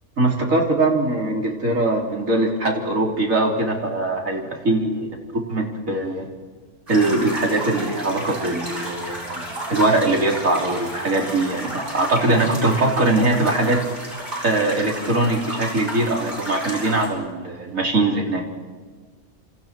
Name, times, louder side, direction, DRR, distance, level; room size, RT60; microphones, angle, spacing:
voice 1, 0.2-6.3 6.9-9.4 9.7-13.8 14.4-18.4, right 2 dB, 85° right, 0 dB, 4.2 m, -21 dB
sound 1, 6.9-17.1, equal, 40° right, 8.1 m, -32 dB
28.5 x 27.5 x 4.6 m, 1.4 s
omnidirectional pair, 1.4 m